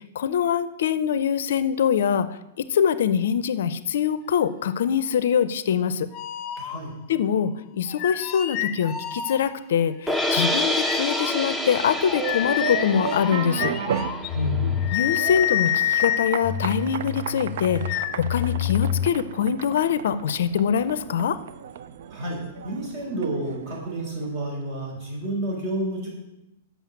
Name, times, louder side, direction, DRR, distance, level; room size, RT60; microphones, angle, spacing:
voice 1, 0.0-6.1 7.1-13.7 14.9-21.4, left 8 dB, 70° left, 14 dB, 0.5 m, -24 dB
sound 1, 6.1-7.1 7.9-9.8 10.8-19.1, left 10 dB, 35° left, 0.7 m, -28 dB
voice 2, 6.6-6.9 14.3-14.9 22.1-26.1, right 1 dB, 45° right, -1 dB, 4.0 m, -30 dB
sound 2, 10.1-16.2, left 1 dB, 5° right, 0.7 m, -29 dB
sound 3, 11.9-24.7, right 9 dB, 65° right, 0.5 m, -35 dB
7.4 x 5.7 x 7.1 m, 0.90 s
hypercardioid pair, 115°, 0 cm